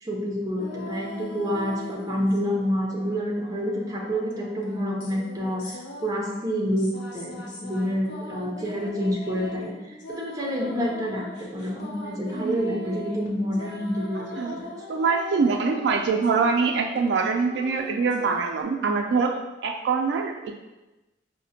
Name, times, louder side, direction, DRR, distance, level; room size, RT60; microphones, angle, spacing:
voice 1, 0.0-14.7, equal, 20° right, -3 dB, 0.6 m, -28 dB
sound 1, 0.6-2.6 2.9-18.6, left 1 dB, 85° left, 0.6 m, -40 dB
voice 2, 14.2-14.6 14.9-20.6, right 4 dB, 80° right, 3 dB, 0.3 m, -24 dB
4.9 x 2.1 x 2.7 m, 1.1 s
head